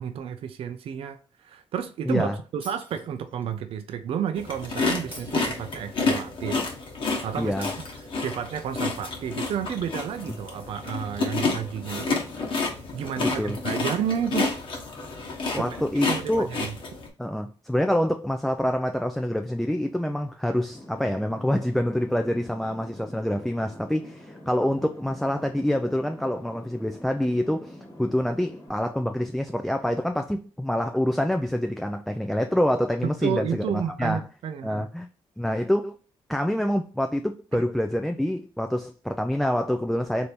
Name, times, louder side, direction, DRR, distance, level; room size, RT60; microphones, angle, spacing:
voice 1, 0.0-6.7 7.2-7.7 8.2-12.6 12.9-14.5 15.5-15.8 16.1-16.7 33.2-34.9 37.5-37.6, right 8 dB, 70° right, 0.4 m, -31 dB
voice 2, 2.1-2.4 7.4-7.7 13.2-13.6 15.5-16.5 17.2-34.2 34.6-35.1 35.4-35.9 36.3-40.3, equal, ahead, 0.3 m, -26 dB
Shatter, 2.6-3.6 5.1-6.1 7.6-8.6, right 1 dB, 15° right, 1.1 m, -47 dB
sound 1, 4.4-17.1, left 3 dB, 55° left, 1.1 m, -30 dB
sound 2, 20.7-28.7, left 1 dB, 35° left, 1.3 m, -46 dB
3.4 x 2.6 x 4.3 m
cardioid pair, 110°, 10 cm